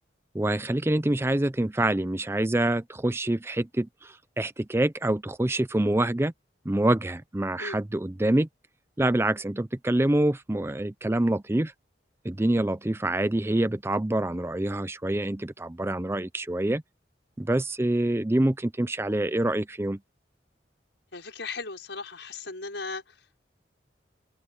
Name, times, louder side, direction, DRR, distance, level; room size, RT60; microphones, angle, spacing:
voice 1, 0.3-6.3 6.7-8.5 9.0-11.7 12.2-16.8 17.4-20.0, right 1 dB, 15° right, 0.5 m, -26 dB
voice 2, 21.1-23.2, left 3 dB, 80° left, 5.6 m, -37 dB
head